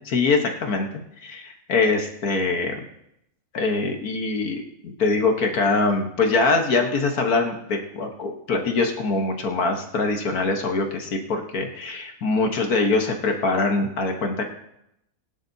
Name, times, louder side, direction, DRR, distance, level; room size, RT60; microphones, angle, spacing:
voice 1, 0.1-0.9 1.2-2.8 3.5-14.5, left 3 dB, 70° left, 3 dB, 1.7 m, -23 dB
20.5 x 11.5 x 2.7 m, 0.81 s
omnidirectional pair, 1.7 m